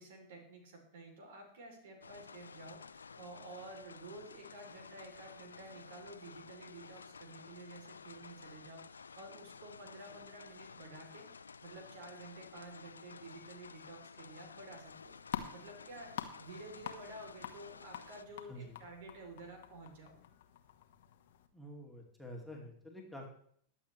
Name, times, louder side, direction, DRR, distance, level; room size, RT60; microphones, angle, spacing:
voice 1, 0.0-20.3, right 2 dB, 55° right, 4 dB, 3.1 m, -52 dB
sound 1, 2.0-18.2, left 5 dB, 75° left, 0.4 m, -53 dB
sound 2, 14.7-21.5, left 10 dB, 55° left, 1.2 m, -47 dB
voice 2, 21.5-23.3, equal, ahead, 0 dB, 2.5 m, -48 dB
21.5 x 7.3 x 3.2 m, 0.64 s
figure-of-eight pair, 90°, 0 cm